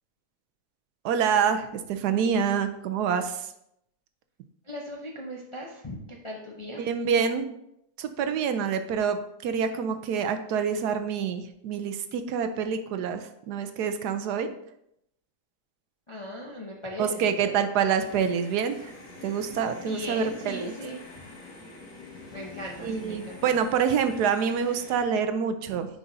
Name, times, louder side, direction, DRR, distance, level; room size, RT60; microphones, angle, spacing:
voice 1, 1.0-3.5 6.8-7.5 8.0-14.5 17.0-18.8 19.2-20.7 22.8-25.9, right 7 dB, 75° right, 8 dB, 1.2 m, -26 dB
voice 2, 4.6-6.9 16.1-17.6 19.7-21.4 22.3-23.8, equal, 35° left, -1 dB, 0.4 m, -39 dB
sound 1, 17.9-25.0, left 3 dB, 55° left, 2.0 m, -46 dB
9.7 x 5.0 x 2.7 m, 0.78 s
omnidirectional pair, 1.8 m